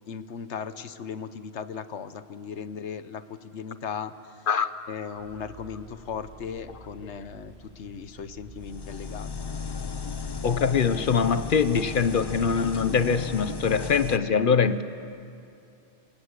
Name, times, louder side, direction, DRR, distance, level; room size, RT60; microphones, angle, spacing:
voice 1, 0.1-4.5 4.9-9.3, left 6 dB, 80° left, 12 dB, 1.2 m, -37 dB
sound 1, 5.1-12.5, right 1 dB, 60° right, 7.5 m, -49 dB
sound 2, 8.6-14.2, left 5 dB, 30° left, 0.5 m, -35 dB
voice 2, 10.4-14.8, left 6 dB, 50° left, 12 dB, 1.0 m, -23 dB
27.5 x 19.0 x 8.2 m, 2.7 s
omnidirectional pair, 1.2 m